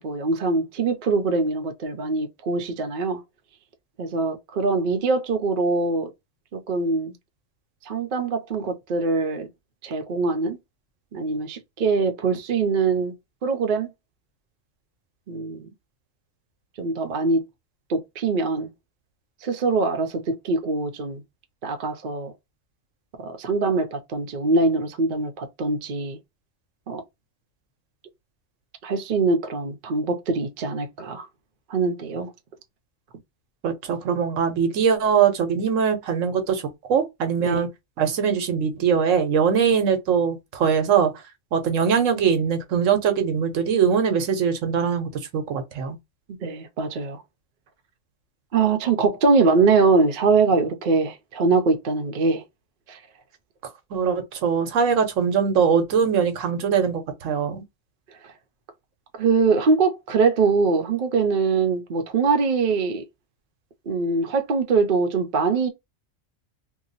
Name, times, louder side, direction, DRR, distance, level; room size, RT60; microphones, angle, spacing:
voice 1, 0.0-3.2 4.0-6.1 6.5-7.1 7.9-9.5 9.8-10.6 11.1-13.1 13.4-13.9 15.3-15.7 16.8-17.4 17.9-18.7 19.4-21.2 21.6-22.3 23.2-26.2 26.9-27.0 28.8-31.3 31.7-32.3 37.4-37.7 46.4-47.2 48.5-52.4 52.9-53.0 59.2-63.0 63.9-65.7, right 4 dB, 50° right, 0.7 m, -23 dB
voice 2, 33.6-37.7 38.0-41.1 41.5-46.0 53.9-57.6, right 7 dB, 90° right, 1.2 m, -22 dB
2.9 x 2.3 x 3.9 m
omnidirectional pair, 1.3 m